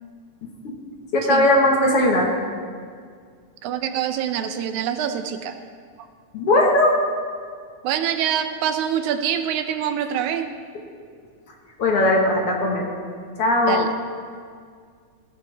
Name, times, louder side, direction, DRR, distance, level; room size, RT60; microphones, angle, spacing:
voice 1, 0.4-0.7 1.1-2.3 6.3-7.0 11.8-12.9 13.4-13.9, left 1 dB, 55° left, 0 dB, 2.2 m, -19 dB
voice 2, 3.6-5.6 6.0-6.1 7.8-10.5 13.7-14.1, right 9 dB, 80° right, 8 dB, 2.0 m, -25 dB
19.0 x 14.5 x 3.5 m, 2.1 s
omnidirectional pair, 3.5 m